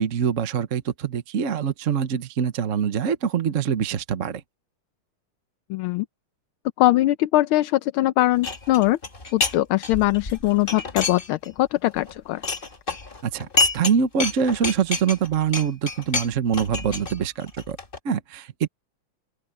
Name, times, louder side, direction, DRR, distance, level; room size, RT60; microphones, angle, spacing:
voice 1, 0.0-4.4 13.2-17.8 18.0-18.7, right 7 dB, 45° right, 1.2 m, -24 dB
voice 2, 5.7-6.1 6.8-9.0 9.3-12.4, left 16 dB, 80° left, 1.6 m, -21 dB
sound 1, 8.4-9.6 9.8-11.6 11.9-13.9 14.2-18.0, left 4 dB, 25° left, 2.0 m, -28 dB
open air
omnidirectional pair, 2.3 m